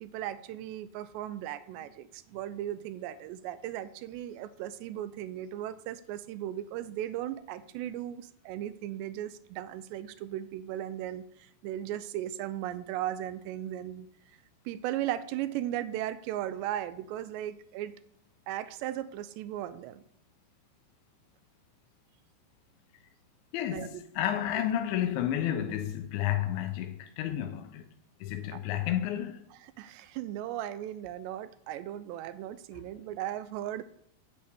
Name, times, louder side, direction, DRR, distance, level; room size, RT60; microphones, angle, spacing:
voice 1, 0.0-14.1 14.7-18.0 18.5-20.0 23.7-23.9 28.5-28.6 29.5-33.8, right 12 dB, 80° right, 2.6 m, -37 dB
voice 2, 23.5-27.9 28.2-29.4, left 11 dB, 80° left, 3.2 m, -31 dB
9.9 x 8.7 x 8.5 m
omnidirectional pair, 5.5 m